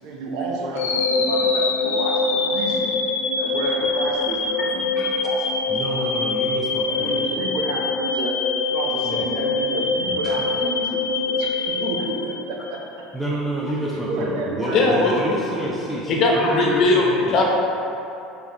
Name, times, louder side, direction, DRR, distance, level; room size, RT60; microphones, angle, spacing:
voice 1, 0.0-3.0 3.4-6.3 6.9-8.4 8.7-13.1 13.9-15.0 15.3-15.8, right 2 dB, 70° right, -1 dB, 0.5 m, -31 dB
sound 1, 0.7-12.9, left 3 dB, 90° left, 0.4 m, -24 dB
voice 2, 5.7-7.1 9.0-9.2 10.4-10.5 13.1-17.4, right 1 dB, 5° right, -6 dB, 0.5 m, -29 dB
voice 3, 14.7-15.1 16.1-17.4, left 2 dB, 50° left, -1 dB, 0.7 m, -19 dB
4.0 x 2.3 x 3.6 m, 2.8 s
hypercardioid pair, 80°, 0 cm